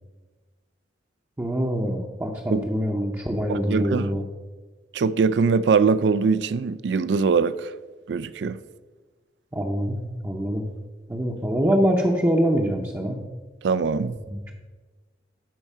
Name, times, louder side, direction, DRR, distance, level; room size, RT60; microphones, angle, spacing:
voice 1, 1.4-4.2 9.5-10.7 11.1-13.2 14.3-14.5, equal, 15° right, 0.7 m, -24 dB
voice 2, 3.5-4.2 4.9-7.7 8.1-8.6 13.6-14.2, right 5 dB, 70° right, 0.4 m, -22 dB
12.0 x 4.5 x 5.5 m
head